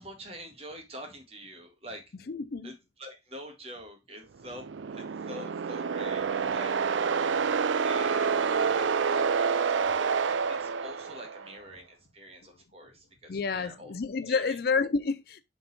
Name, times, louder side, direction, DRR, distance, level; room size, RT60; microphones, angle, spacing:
voice 1, 0.0-2.0 2.6-4.7 4.9-13.9 14.3-14.6, equal, 30° right, 1.8 m, -46 dB
voice 2, 2.3-2.7 13.3-15.4, left 4 dB, 55° left, 0.5 m, -29 dB
sound 1, 4.5-11.5, right 6 dB, 85° right, 0.5 m, -28 dB
6.9 x 4.2 x 4.2 m
head